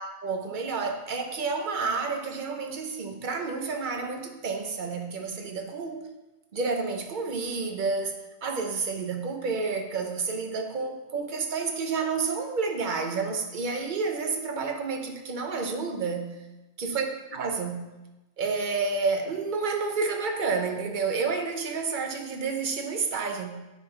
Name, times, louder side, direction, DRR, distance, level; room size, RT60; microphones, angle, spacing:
voice 1, 0.0-6.1 6.5-16.4 16.8-17.1 17.3-17.9 18.4-23.6, right 4 dB, 45° right, 4 dB, 0.8 m, -30 dB
10.0 x 3.7 x 4.5 m, 1.1 s
omnidirectional pair, 1.4 m